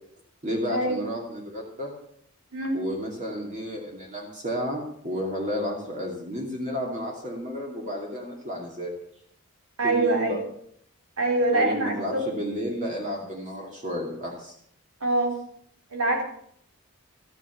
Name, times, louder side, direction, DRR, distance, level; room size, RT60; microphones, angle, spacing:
voice 1, 0.4-1.9 2.7-8.9 9.8-10.4 11.5-14.5, equal, 35° right, -1 dB, 2.7 m, -32 dB
voice 2, 9.8-10.4 11.2-12.2 15.0-15.3 15.9-16.2, right 2 dB, 85° right, 1 dB, 4.2 m, -24 dB
13.5 x 9.8 x 7.1 m, 0.64 s
head